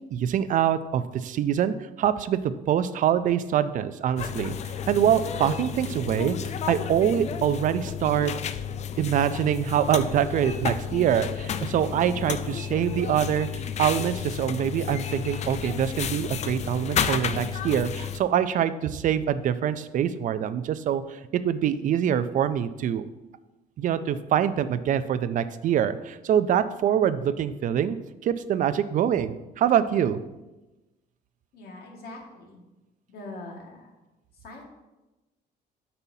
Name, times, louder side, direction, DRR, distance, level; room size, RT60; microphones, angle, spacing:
voice 1, 0.1-2.4 2.7-4.5 4.9-6.4 6.7-8.3 9.0-13.5 13.8-23.0 23.8-28.0 28.2-30.2, right 9 dB, 50° right, 13 dB, 0.4 m, -24 dB
sound 1, 4.2-18.2, left 8 dB, 40° left, 0.4 m, -32 dB
voice 2, 31.5-32.6 33.1-33.7 34.4-34.6, left 2 dB, 65° left, 0 dB, 1.8 m, -42 dB
8.2 x 5.5 x 2.7 m, 1.0 s
cardioid pair, 110°, 17 cm